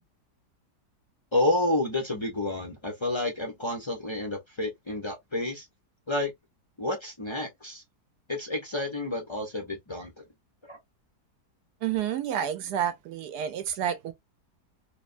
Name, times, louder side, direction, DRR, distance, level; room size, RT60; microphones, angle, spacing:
voice 1, 1.3-5.7 6.1-6.3 6.8-7.8 8.3-10.2 10.6-10.8, left 2 dB, 40° left, 0.4 m, -30 dB
voice 2, 11.8-14.1, right 10 dB, 80° right, 1.2 m, -29 dB
3.3 x 2.1 x 2.4 m
omnidirectional pair, 1.8 m